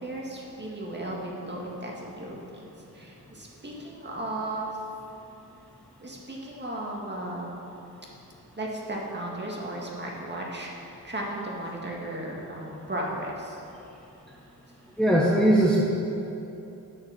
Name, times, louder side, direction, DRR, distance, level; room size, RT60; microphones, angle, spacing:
voice 1, 0.0-2.7 2.9-4.7 6.0-7.7 8.6-13.6, right 1 dB, 30° right, -3 dB, 1.9 m, -35 dB
voice 2, 15.0-15.8, right 1 dB, ahead, -4 dB, 1.0 m, -20 dB
8.7 x 6.7 x 6.3 m, 3.0 s
cardioid pair, 85°, 37 cm